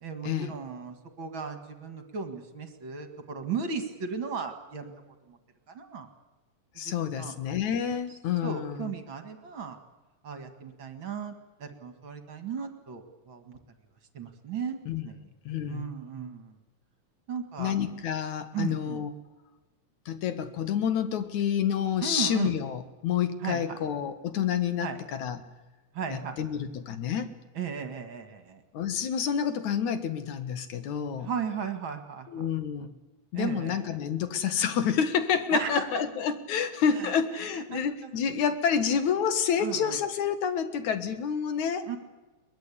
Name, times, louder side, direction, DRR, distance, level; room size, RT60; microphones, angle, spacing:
voice 1, 0.0-4.9 5.3-5.4 5.7-6.1 6.7-7.3 8.4-9.8 10.2-11.3 11.6-13.6 14.1-15.3 15.7-16.6 17.3-17.7 18.5-19.0 22.0-22.5 23.4-23.8 24.8-25.0 25.9-26.4 27.5-28.6 31.2-32.3 33.3-34.0 35.5-35.8 36.6-38.2 39.6-40.0 41.9-42.0, right 6 dB, 45° right, 7 dB, 2.4 m, -36 dB
voice 2, 6.8-8.9 14.9-15.1 15.5-15.9 17.6-19.1 20.1-25.4 26.1-27.3 28.7-31.3 32.3-32.9 33.3-41.9, left 8 dB, 80° left, 10 dB, 2.9 m, -28 dB
22.5 x 20.5 x 8.5 m, 1.2 s
omnidirectional pair, 3.4 m